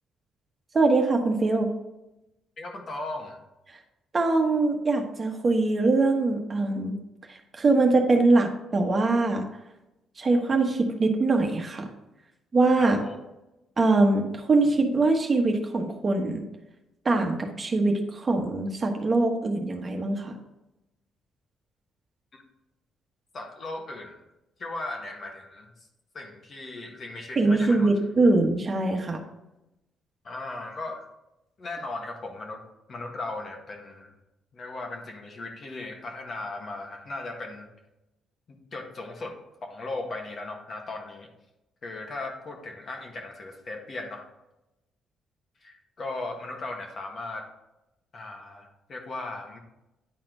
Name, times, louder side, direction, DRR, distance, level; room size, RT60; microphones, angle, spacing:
voice 1, 0.7-1.7 4.1-7.0 7.3-9.5 10.2-11.9 12.5-13.0 13.8-16.4 17.0-20.3 27.4-29.2, right 3 dB, 35° right, 3 dB, 1.2 m, -23 dB
voice 2, 2.6-3.4 12.8-13.2 22.3-22.4 23.3-24.2 24.6-25.7 26.1-27.9 30.2-31.1 31.6-32.6 32.9-34.1 34.5-37.7 38.5-39.3 39.6-41.3 41.8-44.3 45.6-47.5 48.1-49.6, left 2 dB, 45° left, 2 dB, 1.6 m, -37 dB
10.0 x 4.3 x 3.9 m, 0.94 s
cardioid pair, 90°, 0 cm